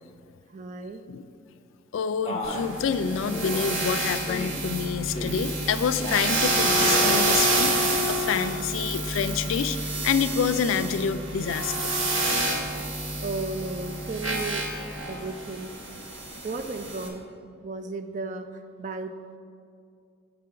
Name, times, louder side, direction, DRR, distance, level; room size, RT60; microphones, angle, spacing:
voice 1, 0.5-1.0 13.2-14.6 15.1-15.7 16.4-17.3 17.6-18.5 18.8-19.1, right 3 dB, 40° right, 8 dB, 0.3 m, -34 dB
voice 2, 1.9-11.9, left 6 dB, 80° left, 12 dB, 0.3 m, -27 dB
Male speech man speaking, 2.2-2.7 3.3-3.7 4.3-4.7 5.1-5.5 5.9-6.4 6.8-7.2, left 2 dB, 30° left, 0.6 m, -34 dB
sound 1, 2.4-17.1, right 1 dB, 80° right, 1.1 m, -28 dB
7.9 x 3.8 x 5.5 m, 2.3 s
head